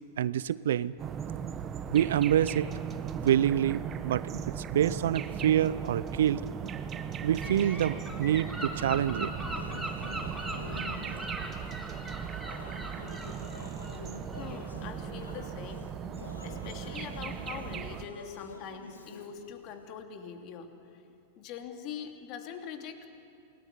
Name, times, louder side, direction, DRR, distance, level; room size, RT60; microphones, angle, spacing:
voice 1, 0.2-0.9 1.9-2.7 3.2-4.2 4.6-6.4 7.2-9.3, right 10 dB, 65° right, 19 dB, 0.7 m, -26 dB
sound 1, 1.0-18.1, right 8 dB, 30° right, 1.3 m, -38 dB
Gull seagull / Wind, 7.4-14.7, right 1 dB, ahead, 3.9 m, -40 dB
sound 2, 9.5-20.0, left 3 dB, 85° left, 2.3 m, -48 dB
voice 2, 14.3-16.0 16.4-21.0 21.4-23.1, left 7 dB, 45° left, 5 dB, 2.8 m, -43 dB
28.5 x 20.0 x 9.5 m, 2.5 s
figure-of-eight pair, 100°, 0 cm